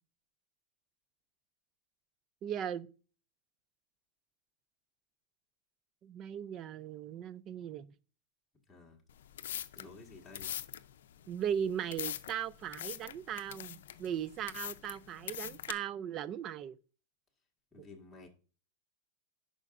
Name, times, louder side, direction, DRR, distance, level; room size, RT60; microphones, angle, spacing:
voice 1, 2.4-2.9 6.0-7.9 11.3-16.8 17.8-17.9, right 9 dB, 30° right, 0.4 m, -38 dB
sound 1, 9.1-15.7, left 11 dB, 80° left, 0.5 m, -43 dB
voice 2, 9.7-10.5 17.7-18.3, left 3 dB, 10° left, 1.7 m, -52 dB
10.5 x 5.0 x 2.5 m
supercardioid pair, 145°, 0 cm